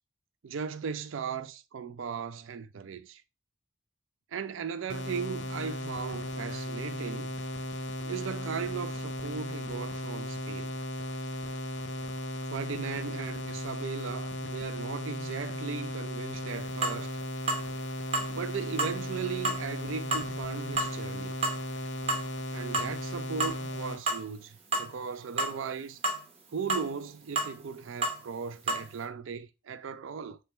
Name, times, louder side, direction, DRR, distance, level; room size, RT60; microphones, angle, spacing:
voice 1, 0.4-3.2 4.3-7.4 8.0-10.7 12.5-17.2 18.3-21.4 22.5-26.0 26.5-30.4, right 6 dB, 70° right, 0.4 m, -37 dB
sound 1, 4.9-24.0, left 1 dB, 70° left, 0.7 m, -36 dB
sound 2, 16.8-17.0 17.5-17.7 18.1-18.3 18.8-19.0 19.4-19.6 20.1-20.3 20.8-21.0 21.4-21.6 22.1-22.3 22.7-22.9 23.4-23.7 24.1-24.2 24.7-24.9 25.4-25.5 26.0-26.2 26.7-26.9 27.4-27.5 28.0-28.2 28.7-28.8, right 2 dB, 30° right, 0.8 m, -29 dB
3.3 x 2.9 x 4.3 m
head